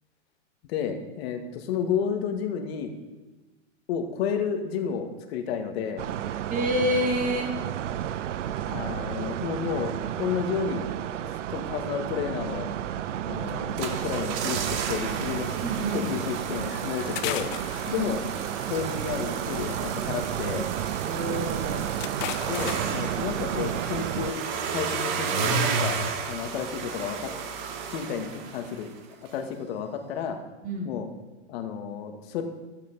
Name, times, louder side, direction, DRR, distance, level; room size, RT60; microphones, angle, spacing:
voice 1, 0.7-2.9 3.9-6.0 8.7-10.8 11.5-12.7 13.3-15.5 15.9-17.5 17.9-18.2 18.7-20.7 22.4-24.4 24.7-26.0 26.3-27.3 27.9-28.9 29.3-30.4 30.8-31.1 31.5-32.4, left 7 dB, 55° left, 5 dB, 1.8 m, -31 dB
sound 1, 6.0-24.3, right 11 dB, 80° right, 0.6 m, -32 dB
voice 2, 6.5-7.6 15.6-16.1 17.9-18.1 21.0-21.9 30.6-31.0, equal, 20° right, 1 dB, 2.5 m, -28 dB
sound 2, 13.5-29.0 29.3-29.4, right 5 dB, 50° right, 1.9 m, -33 dB
sound 3, 16.7-18.5 19.8-20.3 20.7-20.8 21.0-21.1 21.5-23.1 24.1-24.3 24.8-25.2 25.6-25.9, left 14 dB, 30° left, 0.6 m, -37 dB
14.0 x 9.2 x 4.1 m, 1.2 s
hypercardioid pair, 120°, 36 cm